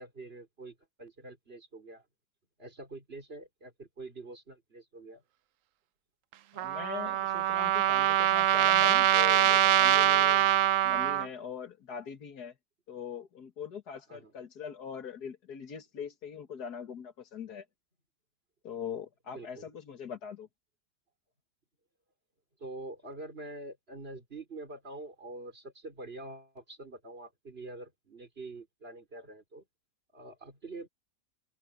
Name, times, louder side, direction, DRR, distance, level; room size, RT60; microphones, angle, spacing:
voice 1, 0.0-2.0 2.6-5.2 14.1-14.3 19.3-19.7 22.6-29.6 30.1-30.9, right 2 dB, 40° right, 3.8 m, -45 dB
voice 2, 6.5-10.5 10.8-12.5 12.9-17.7 18.6-20.5, left 7 dB, 85° left, 2.3 m, -42 dB
Trumpet, 6.6-11.3, right 13 dB, 65° right, 0.9 m, -24 dB
open air
omnidirectional pair, 1.7 m